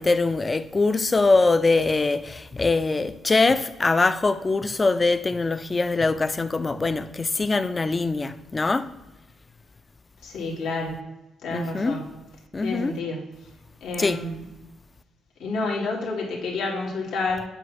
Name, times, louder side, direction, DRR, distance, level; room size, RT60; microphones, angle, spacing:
voice 1, 0.0-8.9 11.5-12.0 12.5-13.0 14.0-14.2, left 3 dB, 25° left, 0.4 m, -23 dB
voice 2, 10.2-11.0 11.4-12.1 12.6-13.3 13.8-14.4 15.4-17.4, left 3 dB, 85° left, 2.1 m, -29 dB
8.1 x 3.0 x 5.8 m
cardioid pair, 90°, 0 cm